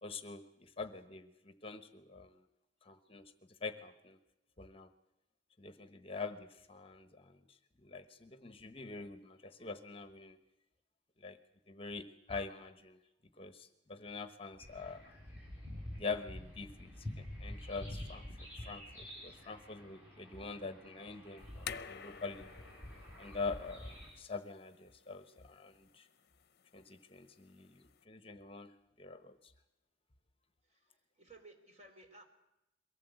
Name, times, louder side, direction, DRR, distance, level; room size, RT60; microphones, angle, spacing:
voice 1, 0.0-2.3 2.8-3.2 3.6-4.2 4.6-4.9 5.6-7.3 7.8-10.4 11.2-11.4 11.7-13.0 13.4-15.1 16.0-16.9 17.4-18.3 18.6-22.5 23.2-26.1 26.7-28.7 29.0-29.4, left 4 dB, 30° left, 10 dB, 1.1 m, -45 dB
sound 1, 14.6-24.1, left 1 dB, 10° right, 6.4 m, -48 dB
sound 2, 21.4-28.0, left 7 dB, 60° left, 0.7 m, -51 dB
voice 2, 31.1-32.2, right 2 dB, 40° right, 3 dB, 4.0 m, -58 dB
23.0 x 17.5 x 8.1 m, 0.91 s
head